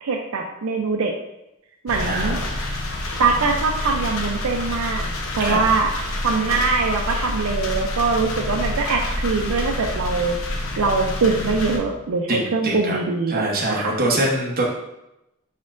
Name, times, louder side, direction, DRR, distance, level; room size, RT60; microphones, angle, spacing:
voice 1, 0.0-1.1 1.8-2.4 3.2-5.9 6.2-10.4 10.8-13.9, right 4 dB, 80° right, 2 dB, 0.5 m, -23 dB
sound 1, 1.9-11.8, left 1 dB, 70° left, 0.8 m, -28 dB
voice 2, 2.0-2.5 5.4-5.6 12.3-13.0 13.3-14.6, right 1 dB, 45° right, -2 dB, 0.9 m, -23 dB
4.6 x 4.3 x 2.5 m, 0.89 s
head